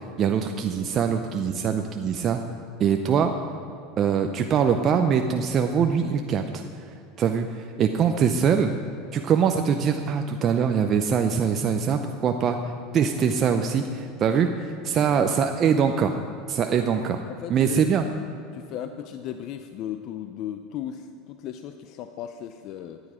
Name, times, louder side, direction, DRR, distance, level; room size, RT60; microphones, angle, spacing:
voice 1, 0.2-2.4 2.8-3.3 4.0-6.6 7.2-8.7 9.1-12.6 12.9-16.2 16.5-17.2 17.5-18.0, right 7 dB, 35° right, 5 dB, 0.6 m, -23 dB
voice 2, 14.9-15.2 17.3-17.8 18.5-23.0, left 10 dB, 50° left, 8 dB, 0.5 m, -36 dB
14.0 x 9.7 x 5.0 m, 2.6 s
supercardioid pair, 130°, 0 cm